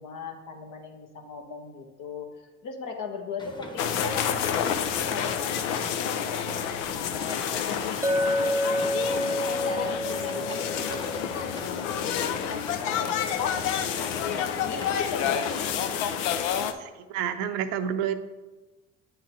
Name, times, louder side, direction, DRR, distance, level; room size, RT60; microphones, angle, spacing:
voice 1, 0.0-6.7 7.1-8.8 9.1-15.5, left 4 dB, 60° left, 2 dB, 1.4 m, -39 dB
sound 1, 3.4-16.0, left 1 dB, 10° left, 1.1 m, -41 dB
sound 2, 3.8-16.7, left 9 dB, 80° left, 0.6 m, -29 dB
Chink clink, 8.0-12.5, left 1 dB, 5° right, 0.6 m, -29 dB
voice 2, 16.8-18.1, right 9 dB, 75° right, 9 dB, 0.7 m, -29 dB
9.1 x 3.8 x 4.2 m, 1.1 s
hypercardioid pair, 60°, 36 cm